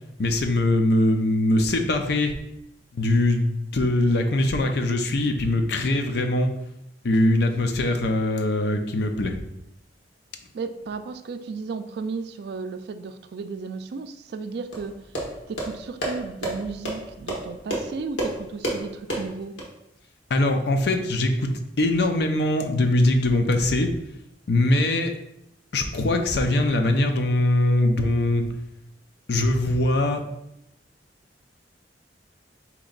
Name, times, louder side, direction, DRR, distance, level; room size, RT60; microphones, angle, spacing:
voice 1, 0.2-2.3 2.9-6.5 7.0-9.4 20.3-21.5 21.8-23.9 24.5-25.1 25.7-28.5 29.3-30.2, left 1 dB, 65° left, 5 dB, 0.5 m, -22 dB
voice 2, 10.5-15.0 15.5-19.6, right 4 dB, 60° right, 9 dB, 0.3 m, -34 dB
sound 1, 14.7-19.7, right 1 dB, 85° left, 1.3 m, -31 dB
4.3 x 3.0 x 3.8 m, 0.81 s
head